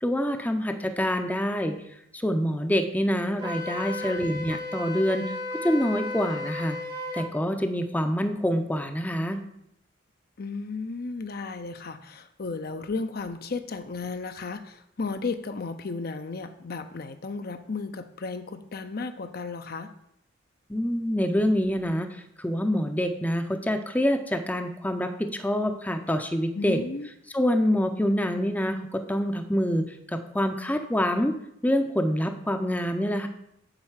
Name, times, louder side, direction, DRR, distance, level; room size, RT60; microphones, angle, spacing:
voice 1, 0.0-1.8 2.1-5.3 5.6-6.8 7.1-9.4 20.7-22.1 22.4-26.8 27.3-31.4 31.6-33.3, equal, 10° left, 6 dB, 0.6 m, -26 dB
Wind instrument woodwind instrument, 3.4-7.3, left 2 dB, 25° right, 0.9 m, -34 dB
voice 2, 4.0-4.3 10.4-19.9 26.5-27.1, left 4 dB, 50° left, 8 dB, 0.6 m, -34 dB
8.9 x 4.3 x 7.3 m, 0.76 s
head